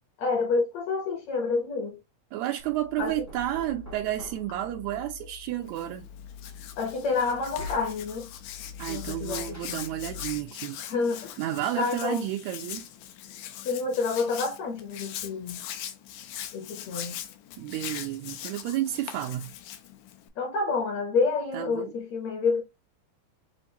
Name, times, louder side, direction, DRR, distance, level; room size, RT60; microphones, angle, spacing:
voice 1, 0.2-2.0 3.0-3.1 6.8-8.3 8.9-9.8 10.8-11.4 11.8-12.3 13.6-15.6 16.5-17.1 20.4-22.6, left 4 dB, 70° left, 1.9 m, -28 dB
voice 2, 2.3-6.1 8.8-10.8 11.4-12.9 17.6-19.5 21.5-21.9, right 13 dB, 80° right, 1.7 m, -31 dB
Knock, 2.6-10.5, left 5 dB, 25° left, 0.3 m, -44 dB
Hands, 5.6-20.3, left 11 dB, 85° left, 2.3 m, -41 dB
7.2 x 2.5 x 2.7 m
omnidirectional pair, 3.6 m